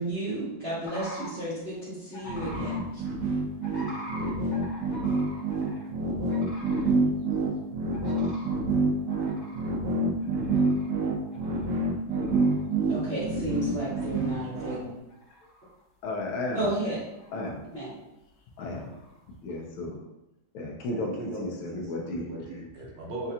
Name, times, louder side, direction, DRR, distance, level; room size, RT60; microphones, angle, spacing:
voice 1, 0.0-3.0 12.9-14.9 16.5-17.0 17.7-18.1, right 2 dB, 45° right, -9 dB, 0.8 m, -32 dB
sound 1, 0.8-1.3 2.1-2.8 3.6-5.9 6.3-6.9 7.3-7.4 7.9-8.5 9.1-11.0 11.3-11.7 12.1-12.6 13.2-13.3 13.7-14.5 15.1-15.8 16.1-16.7 17.0-17.5 18.6-19.2, equal, 45° left, 1.4 m, -44 dB
sound 2, 2.3-14.8, right 2 dB, 85° right, 0.7 m, -27 dB
voice 2, 16.0-16.7 17.3-17.6 18.6-18.9 19.4-20.0 20.5-22.3, left 2 dB, 80° left, 0 dB, 1.6 m, -33 dB
voice 3, 20.9-23.3, right 2 dB, 65° right, -2 dB, 1.4 m, -39 dB
5.7 x 2.5 x 2.8 m, 0.91 s
omnidirectional pair, 2.3 m